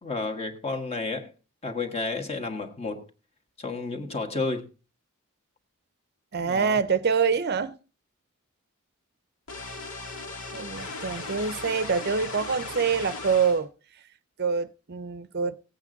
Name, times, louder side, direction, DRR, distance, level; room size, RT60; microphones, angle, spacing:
voice 1, 0.0-1.3 1.6-3.0 3.6-4.7 6.4-6.8, left 3 dB, 30° left, 1.6 m, -31 dB
voice 2, 6.3-7.8 10.2-13.7 14.4-15.6, right 5 dB, 50° right, 0.6 m, -26 dB
sound 1, 9.5-13.6, left 3 dB, 75° left, 1.8 m, -37 dB
17.0 x 8.5 x 3.9 m
head